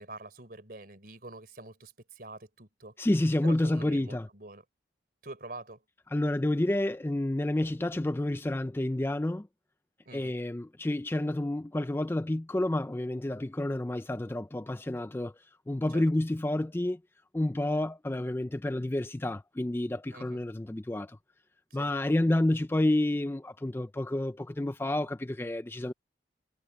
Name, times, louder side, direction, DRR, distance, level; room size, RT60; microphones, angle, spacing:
voice 1, 0.0-3.0 3.4-4.6 5.2-5.8 10.1-10.3 15.9-16.0 20.1-20.4 21.7-21.9, right 2 dB, 55° right, 4.2 m, -46 dB
voice 2, 3.0-4.3 6.1-9.5 10.1-15.3 15.7-17.0 17.3-21.2 21.7-25.9, left 1 dB, 10° left, 0.4 m, -29 dB
head